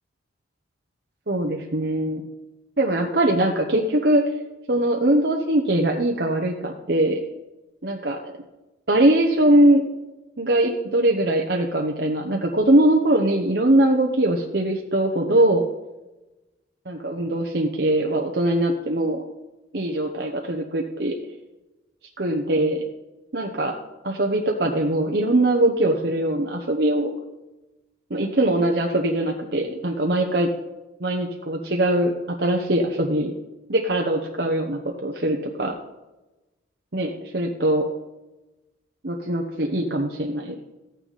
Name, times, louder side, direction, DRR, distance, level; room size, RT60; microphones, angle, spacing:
voice 1, 1.3-2.2 2.8-4.2 4.7-7.2 7.8-8.2 8.9-9.8 10.4-15.6 16.9-19.2 19.7-21.1 22.2-22.8 23.3-23.8 24.0-27.1 28.1-30.5 31.0-32.1 32.4-33.3 33.7-35.8 36.9-37.8 39.0-40.6, right 1 dB, 55° right, 1 dB, 1.0 m, -21 dB
14.5 x 9.2 x 4.1 m, 1.1 s
head